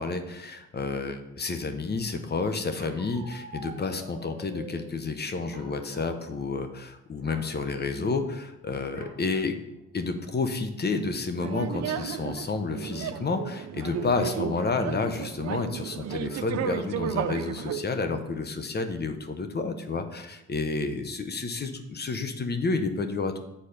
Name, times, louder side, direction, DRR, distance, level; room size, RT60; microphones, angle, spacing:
voice 1, 0.0-9.6 9.9-23.4, left 4 dB, 35° left, 8 dB, 0.9 m, -30 dB
Bark, 2.7-4.9 5.5-6.3 6.6-6.8 7.2-7.5 8.9-9.2 9.8-9.9 10.2-10.6, right 2 dB, 25° right, 1.9 m, -46 dB
sound 1, 11.4-17.8, right 9 dB, 60° right, 0.5 m, -33 dB
7.8 x 4.1 x 6.6 m, 0.90 s
cardioid pair, 90°, 30 cm